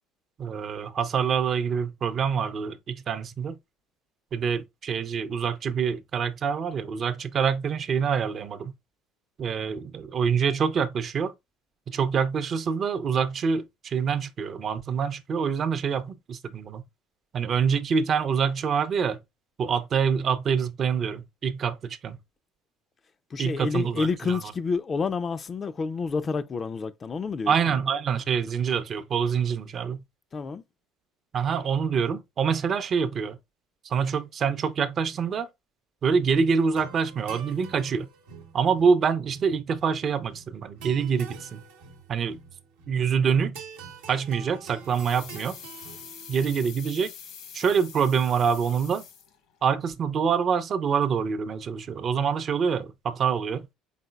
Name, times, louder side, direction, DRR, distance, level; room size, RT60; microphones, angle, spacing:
voice 1, 0.4-3.6 4.3-8.7 9.4-11.3 11.9-16.8 17.3-19.2 19.6-22.2 23.4-24.4 27.5-30.0 31.3-33.4 33.8-35.5 36.0-38.1 38.5-41.6 42.1-42.4 42.9-43.6 44.1-45.6 46.3-47.1 47.5-49.0 49.6-53.7, right 6 dB, 45° right, 0.5 m, -26 dB
voice 2, 23.3-27.7 30.3-30.6, left 4 dB, 35° left, 0.3 m, -29 dB
sound 1, 36.6-46.6, right 6 dB, 85° right, 0.9 m, -46 dB
sound 2, 44.8-49.6 49.9-50.0, left 7 dB, 70° left, 0.9 m, -45 dB
4.0 x 3.7 x 2.3 m
supercardioid pair, 80°, 0 cm